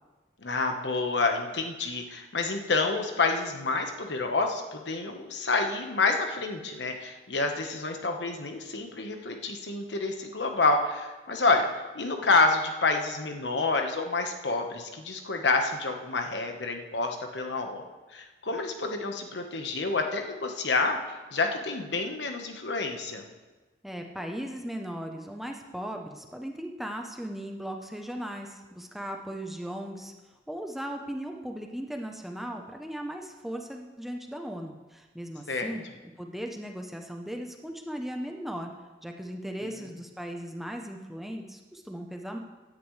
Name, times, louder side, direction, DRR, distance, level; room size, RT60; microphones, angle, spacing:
voice 1, 0.4-11.7 11.9-17.9 18.1-21.0 21.3-23.2 35.5-35.8 39.6-39.7, left 3 dB, 85° left, 4 dB, 1.3 m, -28 dB
voice 2, 23.8-30.1 30.5-35.8 36.2-38.7 39.0-42.4, equal, ahead, 3 dB, 0.8 m, -37 dB
16.5 x 10.0 x 3.3 m, 1.2 s
head